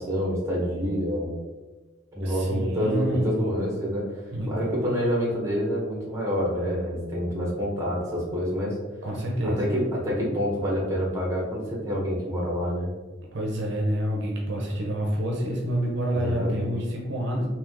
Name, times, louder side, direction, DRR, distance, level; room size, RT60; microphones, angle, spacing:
voice 1, 0.0-1.3 2.1-4.0 4.5-8.8 9.4-12.9 16.1-16.7, equal, 15° right, -4 dB, 1.0 m, -27 dB
voice 2, 2.2-3.3 4.3-4.7 9.0-9.7 13.3-17.5, equal, 55° right, -2 dB, 0.7 m, -28 dB
3.4 x 2.7 x 3.6 m, 1.2 s
head